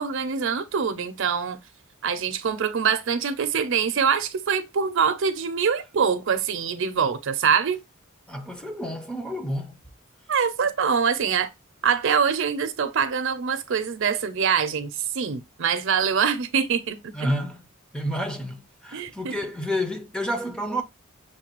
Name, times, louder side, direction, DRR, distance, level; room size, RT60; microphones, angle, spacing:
voice 1, 0.0-1.6 2.0-7.8 10.3-11.5 11.8-17.1 18.9-19.3, right 6 dB, 60° right, 0.5 m, -24 dB
voice 2, 8.3-9.8 17.1-17.6 17.9-20.8, equal, 5° left, 0.5 m, -29 dB
6.5 x 2.3 x 2.9 m
head